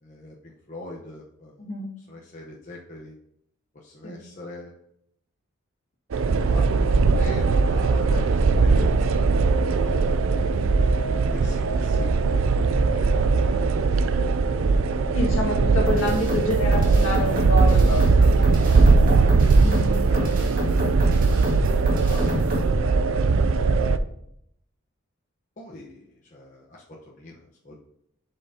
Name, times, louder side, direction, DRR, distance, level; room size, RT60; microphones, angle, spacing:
voice 1, 0.0-1.6 2.0-3.1 3.7-4.7 6.5-9.3 9.8-10.4 11.3-12.2 12.9-14.0 14.5-15.2 17.7-19.6 20.1-20.4 20.8-22.7 23.3-24.3 25.6-27.8, left 1 dB, 35° left, -3 dB, 0.9 m, -42 dB
sound 1, 6.1-24.0, right 4 dB, 75° right, 0.4 m, -20 dB
voice 2, 8.7-9.0 10.5-10.6 15.1-18.1 19.6-20.0 20.5-20.9 23.6-23.8, left 1 dB, 70° left, -1 dB, 1.9 m, -29 dB
sound 2, 15.9-22.7, left 1 dB, 40° right, 2.0 m, -29 dB
10.5 x 5.5 x 2.8 m, 0.72 s
head